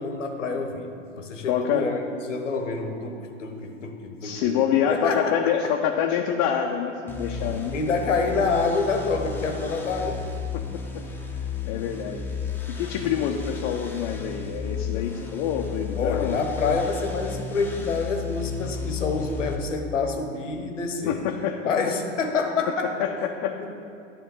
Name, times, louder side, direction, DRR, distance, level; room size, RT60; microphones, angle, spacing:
voice 1, 0.0-2.0 2.3-5.4 7.7-10.2 16.0-21.2 21.6-23.1 23.6-23.7, left 4 dB, 75° left, 4 dB, 1.0 m, -27 dB
voice 2, 1.5-1.9 4.2-7.7 10.5-11.0 11.3-12.3 12.8-16.8 21.1-21.6 23.0-23.6, left 9 dB, 40° left, 1 dB, 0.7 m, -26 dB
sound 1, 7.1-19.6, left 5 dB, 5° left, 0.9 m, -33 dB
10.0 x 3.6 x 7.0 m, 2.6 s
figure-of-eight pair, 85°, 37 cm